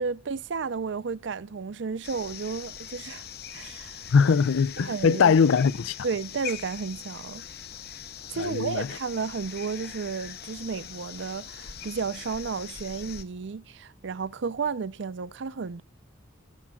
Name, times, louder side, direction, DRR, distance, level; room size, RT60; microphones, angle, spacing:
voice 1, 0.0-3.2 3.5-4.1 4.8-5.3 6.0-7.4 8.3-15.8, right 5 dB, 65° right, 0.5 m, -32 dB
sound 1, 2.0-13.2, left 8 dB, 55° left, 0.8 m, -42 dB
voice 2, 4.1-6.0 8.4-8.9, left 5 dB, 90° left, 0.5 m, -21 dB
17.0 x 7.2 x 2.3 m
head